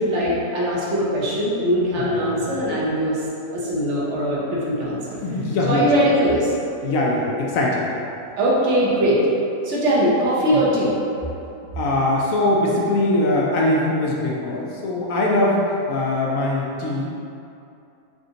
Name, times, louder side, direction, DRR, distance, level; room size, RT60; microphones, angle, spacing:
voice 1, 0.0-3.2 3.5-5.2 5.7-6.5 8.3-9.2 9.6-10.9, equal, 55° right, -6 dB, 1.0 m, -21 dB
voice 2, 5.2-5.8 6.8-7.8 10.5-10.6 11.8-15.6 15.9-17.1, left 1 dB, 70° left, -3 dB, 0.9 m, -21 dB
3.5 x 2.6 x 3.8 m, 2.7 s
omnidirectional pair, 1.6 m